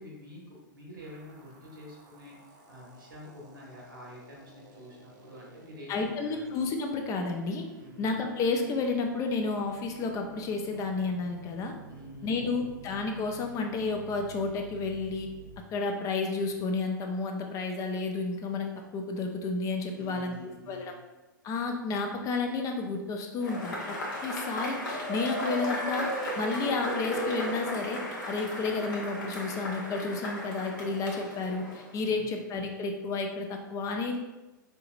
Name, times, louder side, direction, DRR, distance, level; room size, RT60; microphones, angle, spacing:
voice 1, 0.0-2.3 2.7-6.4 7.8-8.2 11.9-12.7 19.9-20.9 32.0-32.3, left 1 dB, 85° right, -3 dB, 1.4 m, -48 dB
sound 1, 1.0-15.6, right 3 dB, 65° right, 0.7 m, -51 dB
voice 2, 5.9-7.6 8.0-11.7 12.2-15.3 15.7-20.3 20.7-20.9 21.4-24.0 24.2-26.1 26.4-28.0 28.3-34.2, left 3 dB, 30° left, 4 dB, 0.5 m, -31 dB
Cheering / Applause / Crowd, 23.4-32.1, left 1 dB, 70° left, 1.2 m, -35 dB
4.6 x 2.8 x 2.5 m, 1.1 s
hypercardioid pair, 105°, 11 cm